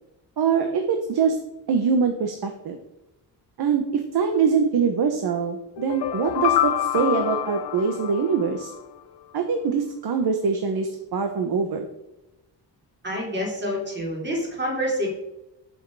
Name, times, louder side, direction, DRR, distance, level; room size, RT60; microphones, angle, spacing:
voice 1, 0.4-1.4 1.7-2.8 3.6-8.7 9.3-11.8, right 6 dB, 60° right, 5 dB, 1.3 m, -23 dB
sound 1, 5.8-8.8, left 12 dB, 70° left, 0.7 m, -26 dB
voice 2, 13.0-15.1, equal, 25° right, -2 dB, 3.7 m, -27 dB
15.0 x 6.6 x 4.9 m, 0.92 s
wide cardioid pair, 170°, 43 cm